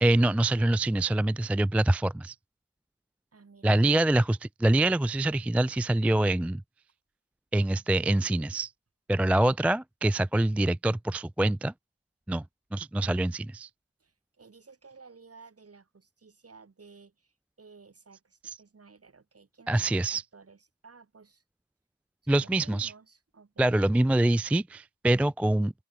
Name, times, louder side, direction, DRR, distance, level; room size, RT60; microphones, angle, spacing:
voice 1, 0.0-2.4 3.6-6.6 7.5-8.7 9.1-11.7 12.3-12.4 12.7-13.7 19.7-20.2 22.3-22.9 23.6-25.7, right 1 dB, 5° right, 0.3 m, -25 dB
voice 2, 3.3-4.0 14.0-21.4 22.2-23.8, right 4 dB, 45° right, 2.2 m, -54 dB
open air
cardioid pair, 45°, 34 cm